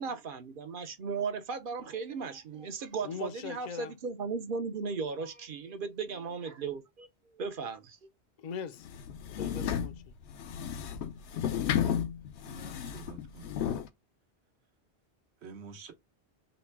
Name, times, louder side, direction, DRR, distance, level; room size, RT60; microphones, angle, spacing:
voice 1, 0.0-8.0, right 5 dB, 60° right, 0.8 m, -36 dB
voice 2, 3.0-3.9 8.4-8.9 9.4-10.1, left 6 dB, 55° left, 0.6 m, -41 dB
sound 1, 8.8-13.9, left 9 dB, 85° left, 0.9 m, -33 dB
voice 3, 12.4-13.5 15.4-15.9, right 4 dB, 85° right, 1.1 m, -48 dB
4.0 x 2.1 x 4.4 m
omnidirectional pair, 1.1 m